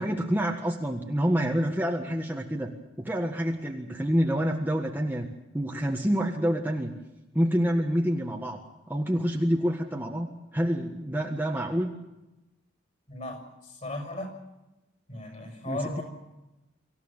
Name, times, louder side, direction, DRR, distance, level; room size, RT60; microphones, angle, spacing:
voice 1, 0.0-2.7 3.0-5.3 5.5-6.9 7.3-8.6 8.9-10.3 10.5-11.9 15.6-16.0, equal, 10° right, 1 dB, 1.6 m, -27 dB
voice 2, 13.1-14.3 15.1-16.0, left 1 dB, 40° left, 4 dB, 6.6 m, -36 dB
25.0 x 15.5 x 8.9 m, 1.0 s
head